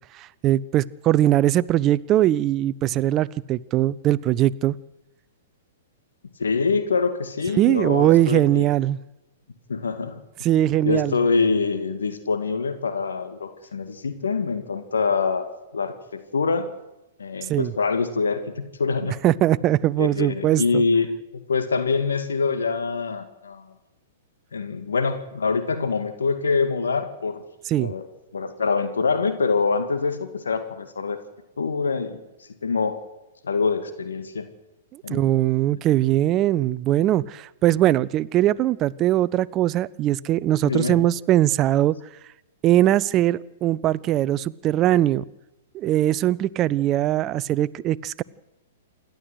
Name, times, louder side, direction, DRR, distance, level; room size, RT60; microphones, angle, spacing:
voice 1, 0.2-4.7 7.6-9.0 10.4-11.2 17.5-17.7 19.2-20.8 27.7-27.9 34.9-41.9 42.6-45.2 45.7-48.2, right 13 dB, 30° right, 19 dB, 0.6 m, -21 dB
voice 2, 6.4-8.7 9.7-10.2 10.8-16.7 17.2-19.2 20.0-23.7 24.5-27.4 27.8-28.0 28.3-31.2 31.6-32.2 32.6-33.0 33.4-34.5 35.0-35.3 35.7-35.8 40.6-41.0, left 4 dB, 70° left, 8 dB, 2.1 m, -25 dB
27.5 x 12.0 x 8.0 m, 0.97 s
figure-of-eight pair, 110°, 0 cm